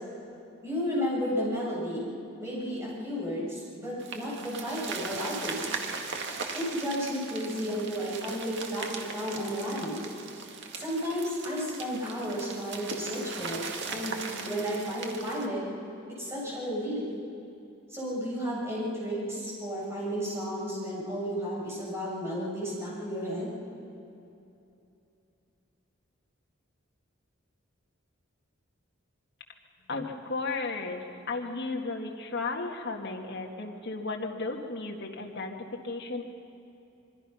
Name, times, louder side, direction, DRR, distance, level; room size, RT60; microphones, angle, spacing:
voice 1, 0.6-2.0 2.4-5.6 6.5-10.1 10.8-15.6 16.1-17.0 17.9-23.5, equal, 15° right, -6 dB, 7.7 m, -33 dB
sound 1, 4.0-15.5, right 4 dB, 60° right, 2.0 m, -39 dB
voice 2, 29.9-35.6 35.8-36.2, left 3 dB, 60° left, 1 dB, 2.1 m, -34 dB
26.0 x 23.5 x 5.8 m, 2.8 s
head